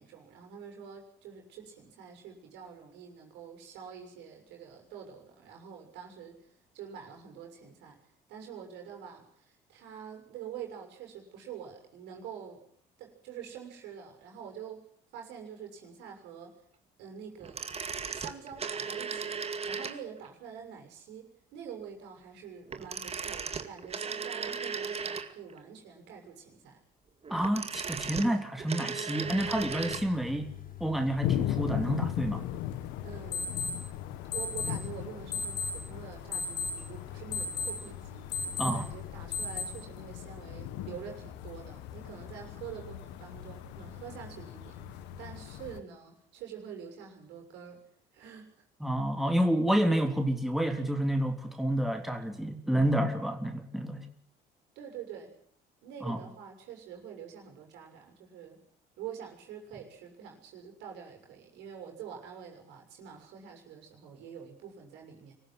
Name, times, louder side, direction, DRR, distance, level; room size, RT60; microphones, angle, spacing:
voice 1, 0.0-6.4 6.7-8.0 8.3-12.6 13.0-14.8 15.1-16.5 17.0-17.8 18.1-19.4 19.7-26.8 33.0-33.4 34.2-38.3 38.6-47.8 48.1-48.6 54.7-55.3 55.8-58.6 59.0-65.3, right 8 dB, 80° right, 3 dB, 6.8 m, -46 dB
sound 1, 17.4-20.3 22.7-25.6 27.2-30.1 30.3-30.4, right 5 dB, 35° right, 2.3 m, -36 dB
voice 2, 27.3-30.5 30.8-32.4 38.6-38.8 48.8-54.1 56.0-56.2, right 1 dB, ahead, 4 dB, 3.4 m, -29 dB
sound 2, 29.2-39.6, left 4 dB, 55° left, 6.9 m, -38 dB
sound 3, 31.2-45.8, left 12 dB, 85° left, 1.6 m, -38 dB
24.5 x 15.0 x 9.7 m, 0.63 s
supercardioid pair, 75°, 18 cm